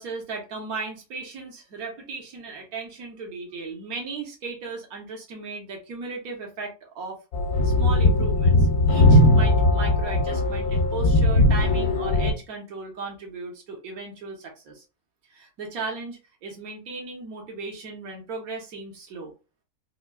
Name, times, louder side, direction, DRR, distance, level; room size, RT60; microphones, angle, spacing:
voice 1, 0.0-7.2 7.6-14.8 15.3-19.3, right 4 dB, 80° right, 0 dB, 1.5 m, -36 dB
sound 1, 7.3-12.3, left 1 dB, 75° left, 1.1 m, -19 dB
3.7 x 2.7 x 2.3 m, 0.30 s
omnidirectional pair, 1.5 m